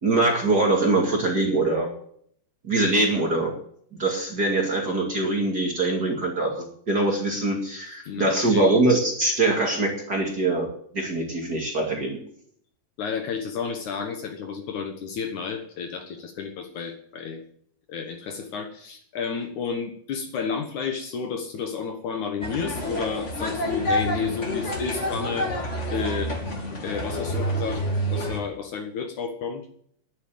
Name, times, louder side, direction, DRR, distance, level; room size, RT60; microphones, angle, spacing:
voice 1, 0.0-1.9 2.6-3.5 3.9-12.2, right 2 dB, 30° right, 0 dB, 2.3 m, -23 dB
voice 2, 8.0-8.7 13.0-17.4 17.9-25.5 25.9-26.4 26.8-27.8 28.1-29.7, left 6 dB, 65° left, 6 dB, 2.4 m, -31 dB
sound 1, 22.4-28.4, equal, 20° left, 2.5 m, -28 dB
11.5 x 9.7 x 8.6 m, 0.62 s
omnidirectional pair, 4.3 m